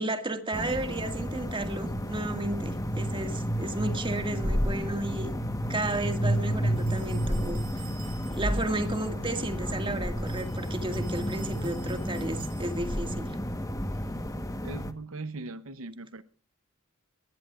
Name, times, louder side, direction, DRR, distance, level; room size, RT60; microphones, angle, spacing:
voice 1, 0.0-5.3 5.7-7.6 8.3-13.3, right 2 dB, 25° right, 7 dB, 2.0 m, -33 dB
sound 1, 0.5-14.9, equal, 15° left, 1.2 m, -31 dB
sound 2, 6.8-8.7 10.2-13.1, right 7 dB, 45° right, 7.1 m, -52 dB
voice 2, 14.6-16.2, right 3 dB, 70° right, 12 dB, 0.8 m, -39 dB
21.0 x 20.0 x 2.5 m, 0.36 s
head